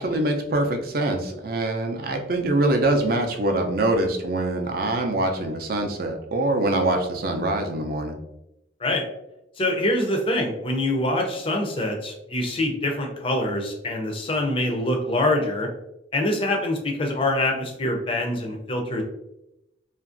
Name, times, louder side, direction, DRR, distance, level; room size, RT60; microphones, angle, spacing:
voice 1, 0.0-8.2, right 2 dB, 50° right, 4 dB, 0.4 m, -24 dB
voice 2, 9.6-15.7 16.1-19.0, left 1 dB, 30° left, 2 dB, 0.4 m, -25 dB
2.9 x 2.5 x 2.4 m, 0.88 s
head